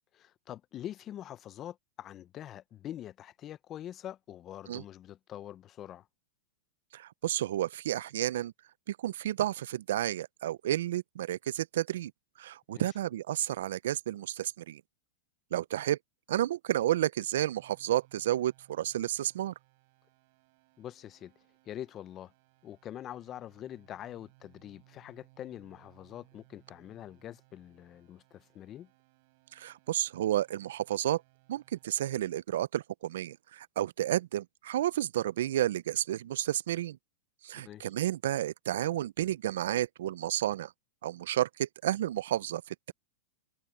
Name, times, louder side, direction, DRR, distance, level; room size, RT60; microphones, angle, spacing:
voice 1, 0.2-6.1 12.7-12.9 20.8-21.3 21.7-22.3 22.6-28.9 37.6-37.9, left 11 dB, 30° left, 0.6 m, -44 dB
voice 2, 6.9-8.5 8.9-12.1 12.4-14.8 15.5-16.0 16.3-19.5 29.5-31.2 31.5-37.0 37.4-40.7 41.0-42.9, right 12 dB, 75° right, 0.4 m, -31 dB
sound 1, 17.5-31.8, right 26 dB, 55° right, 4.5 m, -65 dB
hypercardioid pair, 130°, 0 cm